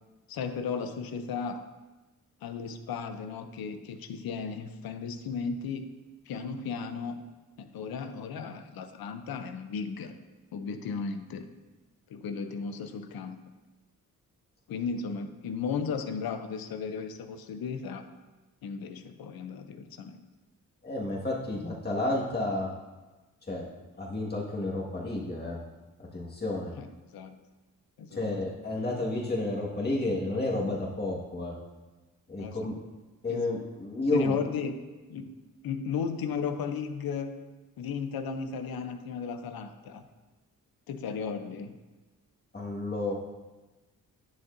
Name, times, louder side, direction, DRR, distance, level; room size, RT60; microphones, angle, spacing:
voice 1, 0.3-1.6 2.4-5.9 6.3-7.2 7.6-10.1 10.5-11.5 12.1-13.4 14.7-18.0 18.6-20.2 26.8-27.4 28.0-28.3 32.4-32.7 33.3-33.5 34.1-34.8 35.1-35.4 35.6-37.3 37.8-40.0 40.9-41.8, left 6 dB, 80° left, 9 dB, 0.7 m, -35 dB
voice 2, 20.8-22.7 23.5-23.6 24.0-25.6 26.1-26.7 28.2-31.5 32.3-32.7 33.2-34.3 42.5-43.1, left 2 dB, 25° left, -4 dB, 1.7 m, -31 dB
10.0 x 6.3 x 2.6 m, 1.2 s
cardioid pair, 75°, 36 cm